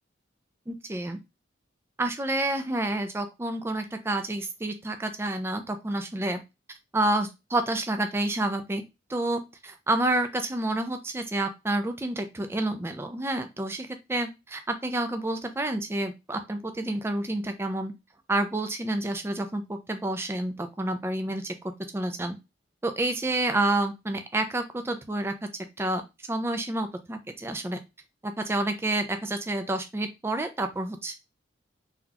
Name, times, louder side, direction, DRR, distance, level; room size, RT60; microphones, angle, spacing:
voice 1, 0.7-1.2 2.0-6.4 6.9-8.8 9.1-17.9 18.3-21.5 21.9-22.4 22.8-25.3 25.8-26.0 26.3-27.8 28.2-31.2, right 2 dB, 15° right, 7 dB, 0.3 m, -29 dB
3.9 x 2.8 x 2.3 m, 0.24 s
head